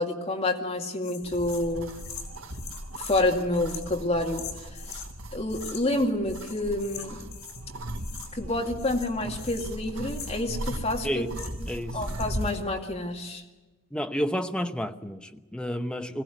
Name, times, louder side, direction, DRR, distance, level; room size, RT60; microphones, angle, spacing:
voice 1, 0.0-1.9 3.0-4.5 4.9-5.0 5.3-7.2 8.3-11.2 11.9-13.4, left 2 dB, 30° left, 2.3 m, -28 dB
sound 1, 1.0-5.1 5.5-6.0 6.3-7.7 7.9-8.5 8.8-11.7 12.0-12.5, left 7 dB, 70° left, 4.7 m, -44 dB
sound 2, 1.3-12.6, right 1 dB, 85° right, 1.6 m, -38 dB
voice 2, 11.7-12.0 13.9-16.2, equal, 5° left, 0.9 m, -30 dB
21.5 x 17.0 x 9.3 m
head